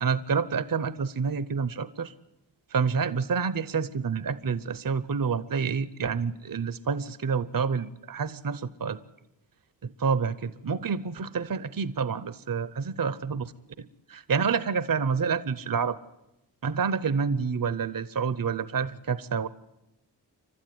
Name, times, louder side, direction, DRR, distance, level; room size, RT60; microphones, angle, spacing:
voice 1, 0.0-2.1 2.7-9.0 9.8-13.5 14.1-16.0 16.6-19.5, right 5 dB, 50° right, 16 dB, 0.8 m, -28 dB
30.0 x 12.5 x 9.4 m, 0.91 s
wide cardioid pair, 95°, 44 cm